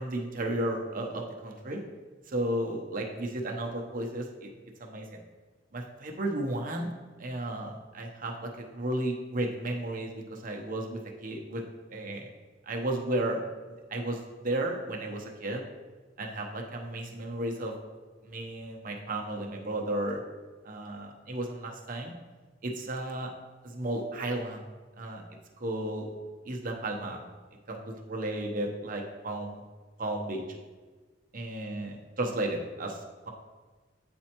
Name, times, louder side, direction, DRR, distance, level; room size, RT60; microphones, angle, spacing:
voice 1, 0.0-1.8 2.3-4.5 4.8-5.2 5.7-6.9 7.2-11.6 11.9-12.3 12.7-13.4 13.9-15.6 16.2-17.7 18.2-20.2 20.6-22.1 22.6-23.3 23.6-24.6 25.0-25.2 25.6-26.1 26.4-27.2 27.7-29.6 30.0-30.4 31.3-33.3, right 1 dB, 50° right, 1 dB, 0.8 m, -33 dB
8.4 x 4.3 x 2.9 m, 1.3 s
head